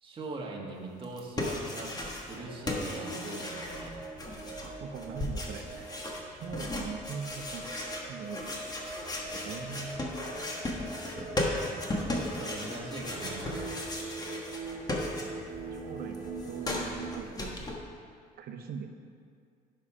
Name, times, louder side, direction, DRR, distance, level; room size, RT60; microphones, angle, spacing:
voice 1, 0.0-4.0 11.9-13.8, right 2 dB, 30° right, -2 dB, 1.6 m, -41 dB
sound 1, 1.0-2.4 2.7-15.6 15.9-17.7, left 1 dB, 20° left, 1.4 m, -36 dB
sound 2, 2.3-17.2, right 3 dB, 45° right, 1.5 m, -43 dB
voice 2, 4.6-5.9 6.3-7.6 8.1-8.6 9.3-10.0 15.7-17.7 18.4-18.9, right 6 dB, 65° right, 5 dB, 1.0 m, -41 dB
10.5 x 5.7 x 5.0 m, 2.2 s
cardioid pair, 110°, 17 cm